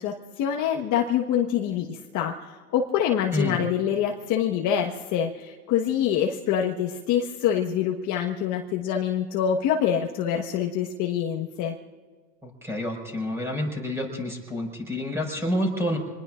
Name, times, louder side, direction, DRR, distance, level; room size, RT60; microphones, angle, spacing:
voice 1, 0.0-11.7, left 9 dB, 35° left, 0 dB, 1.4 m, -25 dB
voice 2, 12.4-16.0, left 1 dB, 5° right, 1 dB, 5.3 m, -28 dB
27.0 x 20.5 x 2.5 m, 1.5 s
hypercardioid pair, 125°, 49 cm